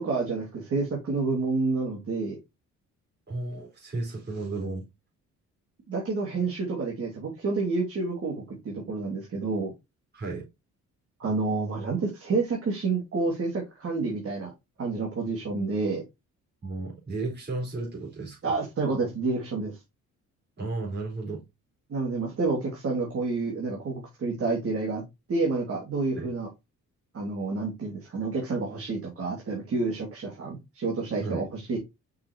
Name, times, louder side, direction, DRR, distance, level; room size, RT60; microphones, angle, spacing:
voice 1, 0.0-2.4 5.9-9.7 11.2-14.5 14.8-16.0 18.4-19.8 21.9-25.0 25.3-26.5 27.1-31.8, right 3 dB, 50° right, 2.5 m, -29 dB
voice 2, 3.3-4.8 10.1-10.4 16.6-18.5 20.6-21.4 26.2-26.3 31.2-31.5, right 3 dB, 35° right, 4.6 m, -34 dB
6.1 x 5.7 x 3.0 m
cardioid pair, 90°, 30 cm